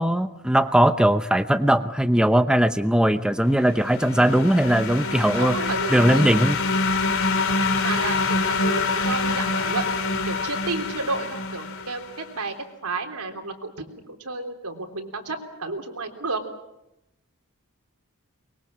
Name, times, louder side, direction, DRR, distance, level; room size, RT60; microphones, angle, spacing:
voice 1, 0.0-5.6 5.9-6.6, right 1 dB, 5° right, 9 dB, 0.8 m, -19 dB
sound 1, 3.6-12.2, left 3 dB, 65° left, 2.7 m, -25 dB
voice 2, 5.3-6.3 7.8-12.5 12.8-16.4, right 3 dB, 85° right, 4 dB, 3.5 m, -31 dB
23.5 x 22.0 x 7.5 m, 0.88 s
head